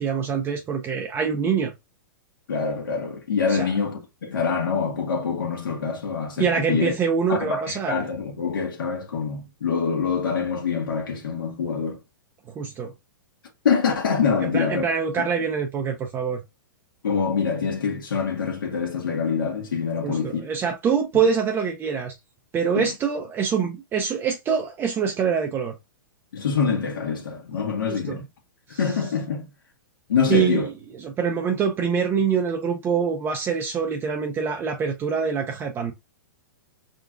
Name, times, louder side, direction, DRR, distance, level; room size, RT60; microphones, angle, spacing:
voice 1, 0.0-1.7 3.5-3.7 6.4-7.9 12.6-12.9 14.4-16.4 20.0-22.1 22.5-25.7 27.9-28.2 28.7-28.8 30.3-30.6 31.0-35.9, right 6 dB, 20° right, 0.5 m, -25 dB
voice 2, 2.5-6.9 7.3-12.0 13.6-14.8 15.2-15.3 17.0-20.5 22.7-22.9 26.3-28.2 28.8-29.4 30.1-30.7, left 6 dB, 85° left, 1.6 m, -25 dB
4.6 x 3.7 x 2.4 m
hypercardioid pair, 135°, 11 cm